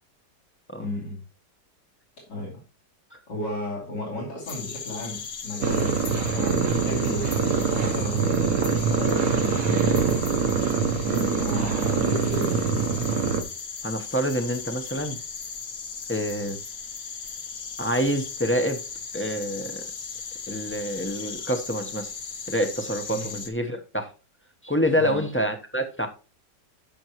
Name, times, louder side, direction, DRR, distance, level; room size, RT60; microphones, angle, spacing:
voice 1, 0.8-1.2 2.3-2.6 3.3-5.9 6.3-8.2 8.9-10.0 11.3-13.0 23.1-23.3 25.0-25.3, left 1 dB, 85° left, -3 dB, 3.6 m, -34 dB
sound 1, 4.5-23.5, left 5 dB, 55° left, 1.5 m, -37 dB
sound 2, 5.6-13.4, right 5 dB, 60° right, 1.2 m, -24 dB
voice 2, 13.8-15.2 16.1-16.6 17.8-18.8 19.1-19.9 20.5-22.1 22.5-24.1 24.6-26.1, equal, 10° left, 5 dB, 0.6 m, -27 dB
13.5 x 6.0 x 3.0 m, 0.33 s
omnidirectional pair, 1.8 m